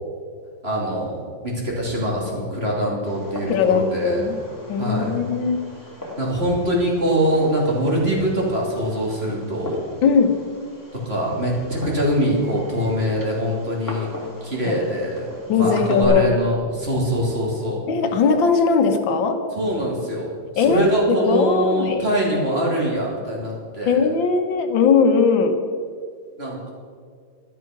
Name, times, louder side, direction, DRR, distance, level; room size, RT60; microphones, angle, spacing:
voice 1, 0.6-4.3 4.7-5.2 6.2-9.8 11.0-14.1 14.4-15.3 15.6-17.8 19.5-24.1 26.4-26.7, equal, 30° right, -3 dB, 3.2 m, -23 dB
Fireworks, 3.1-16.1, left 1 dB, 10° left, 2.3 m, -39 dB
voice 2, 3.5-4.4 4.7-5.6 10.0-10.4 14.7-14.8 15.5-16.3 17.9-19.4 20.6-22.0 23.9-25.6, left 5 dB, 85° left, 6 dB, 1.9 m, -19 dB
12.5 x 11.5 x 6.0 m, 2.1 s
omnidirectional pair, 2.0 m